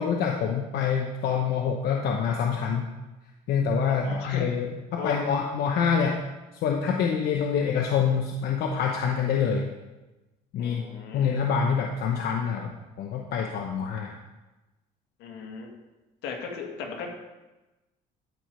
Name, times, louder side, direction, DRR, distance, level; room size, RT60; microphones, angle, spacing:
voice 1, 0.0-2.9 3.5-6.2 6.6-9.7 10.5-10.8 11.1-12.7 13.0-14.1, left 6 dB, 70° left, 1 dB, 0.9 m, -26 dB
voice 2, 3.9-4.5 5.0-5.2 10.6-11.5 15.2-15.7 16.2-17.1, left 5 dB, 90° left, 2 dB, 1.8 m, -37 dB
12.5 x 4.7 x 5.2 m, 1.1 s
cardioid pair, 110°, 17 cm